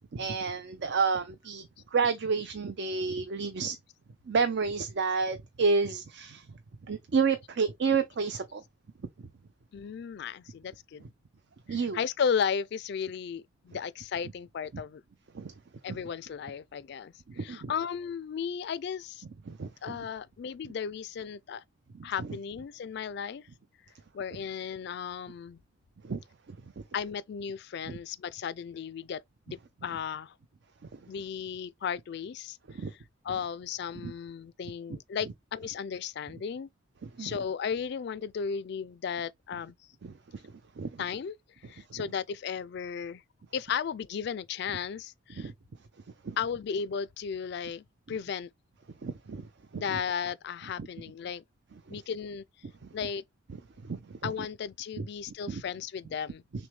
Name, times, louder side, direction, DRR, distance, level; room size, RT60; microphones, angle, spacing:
voice 1, 0.1-3.8 4.3-6.5 6.9-8.6 11.7-12.0 15.3-15.5 15.9-16.0 17.4-17.7 19.5-20.0 21.9-22.3 26.0-26.2 26.8-26.9 27.9-28.0 32.7-32.9 34.0-34.1 37.0-37.4 40.0-40.1 40.8-41.0 45.4-45.5 46.2-46.4 49.0-50.0 51.9-52.0 53.8-54.3 55.0-55.1 55.5-55.6, right 5 dB, 60° right, 0.5 m, -30 dB
voice 2, 9.7-11.1 11.7-15.0 15.8-19.2 19.8-21.6 22.0-23.4 24.1-25.6 26.9-29.2 29.5-30.3 31.1-32.6 33.2-36.7 37.2-39.7 41.0-41.4 41.7-43.2 43.5-45.5 46.4-48.5 49.8-51.4 51.9-52.4 52.9-53.2 54.2-56.4, left 7 dB, 55° left, 0.3 m, -35 dB
6.1 x 2.2 x 3.2 m
head